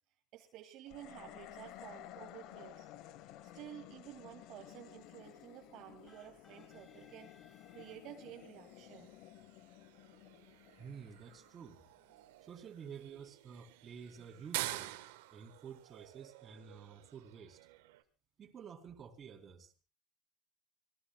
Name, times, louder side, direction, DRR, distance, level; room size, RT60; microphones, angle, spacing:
voice 1, 0.3-2.9 3.4-7.3 7.7-9.1, right 11 dB, 55° right, 2 dB, 2.4 m, -52 dB
sound 1, 0.9-12.2, left 13 dB, 60° left, 1.2 m, -55 dB
sound 2, 6.1-8.5, left 5 dB, 30° left, 3.0 m, -65 dB
sound 3, 6.1-18.0, right 17 dB, 85° right, 1.4 m, -49 dB
voice 2, 10.8-11.8 12.4-15.0 15.3-17.6 18.4-19.7, right 7 dB, 30° right, 4 dB, 3.9 m, -51 dB
26.0 x 18.5 x 2.4 m, 0.33 s
supercardioid pair, 125°, 0 cm